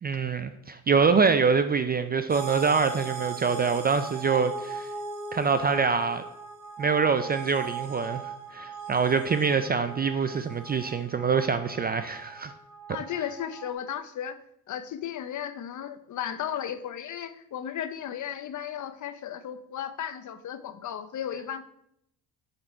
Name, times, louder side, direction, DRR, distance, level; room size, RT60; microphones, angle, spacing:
voice 1, 0.0-4.9 5.3-6.2 6.8-12.5, right 5 dB, 25° right, 0.3 m, -25 dB
sound 1, 2.3-13.7, right 5 dB, 50° right, 2.6 m, -39 dB
voice 2, 12.9-14.4 14.7-21.6, left 9 dB, 50° left, 0.7 m, -35 dB
7.9 x 3.9 x 4.4 m
cardioid pair, 85°, 40 cm